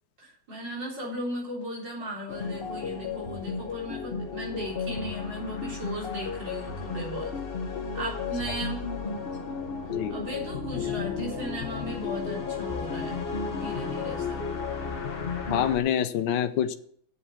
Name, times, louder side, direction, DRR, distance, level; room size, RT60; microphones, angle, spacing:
voice 1, 0.2-7.3 7.9-9.0 10.1-13.2 13.5-14.5, equal, 60° right, -3 dB, 4.5 m, -36 dB
sound 1, 2.3-15.8, left 5 dB, 35° left, 1.1 m, -33 dB
voice 2, 15.5-16.7, left 10 dB, 70° left, 10 dB, 1.4 m, -26 dB
8.4 x 7.7 x 8.5 m, 0.63 s
omnidirectional pair, 2.3 m